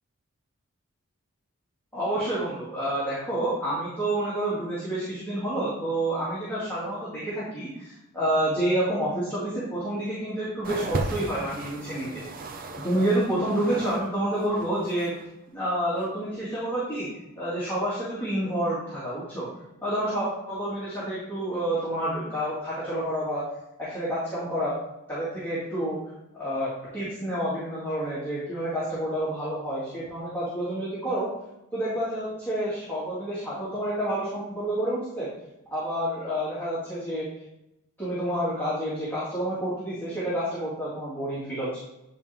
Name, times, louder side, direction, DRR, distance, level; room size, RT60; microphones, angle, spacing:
voice 1, 1.9-12.2 12.8-15.1 15.5-17.1 17.4-19.5 19.8-23.4 23.8-24.7 25.1-26.0 26.3-31.3 31.7-35.3 35.7-37.3 38.0-41.8, right 1 dB, 10° left, -10 dB, 2.6 m, -29 dB
sound 1, 10.6-14.1 14.3-15.2 16.0-16.1, right 2 dB, 40° right, 0.7 m, -35 dB
10.5 x 4.5 x 3.6 m, 0.89 s
head